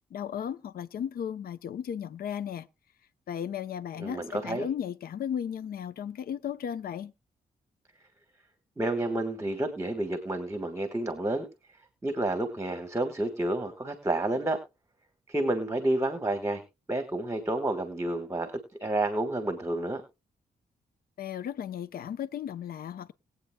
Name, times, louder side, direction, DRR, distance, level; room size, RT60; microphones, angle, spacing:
voice 1, 0.1-2.7 3.3-7.1 21.2-23.1, left 9 dB, 70° left, 0.6 m, -35 dB
voice 2, 4.0-4.7 8.8-11.5 12.0-14.6 15.3-16.6 16.9-18.5 18.8-20.0, right 1 dB, 20° right, 1.4 m, -30 dB
20.5 x 8.2 x 2.2 m
cardioid pair, 80°, 16 cm